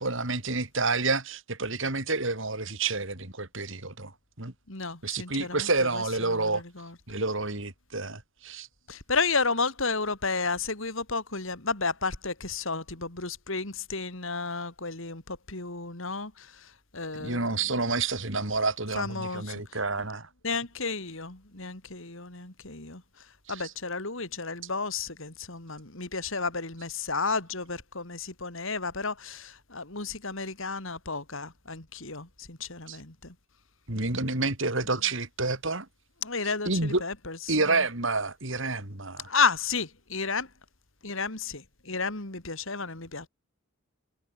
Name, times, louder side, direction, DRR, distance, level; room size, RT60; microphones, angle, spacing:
voice 1, 0.0-4.1 4.4-4.5 5.0-6.6 7.1-8.7 17.1-20.3 23.5-23.7 32.9-33.0 33.9-35.9 36.4-37.0 37.5-39.3, right 3 dB, 60° right, 3.5 m, -29 dB
voice 2, 4.7-6.0 6.3-6.9 8.9-16.5 16.9-17.5 18.9-19.6 20.4-23.0 23.5-33.3 36.2-37.8 39.3-40.5 41.0-43.3, left 4 dB, 65° left, 3.4 m, -32 dB
head